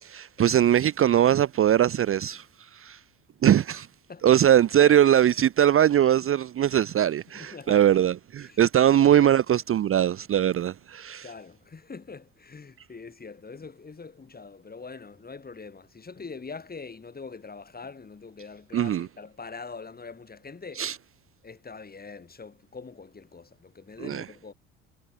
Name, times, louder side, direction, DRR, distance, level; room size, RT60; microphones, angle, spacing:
voice 1, 0.0-2.5 2.7-3.0 3.4-3.9 4.2-11.3 18.7-19.1 20.8-21.0 24.0-24.3, right 10 dB, 35° right, 0.7 m, -21 dB
voice 2, 7.3-8.0 8.4-8.6 9.0-9.3 11.2-20.8 21.4-24.5, left 4 dB, 25° left, 3.7 m, -43 dB
hypercardioid pair, 65°, 38 cm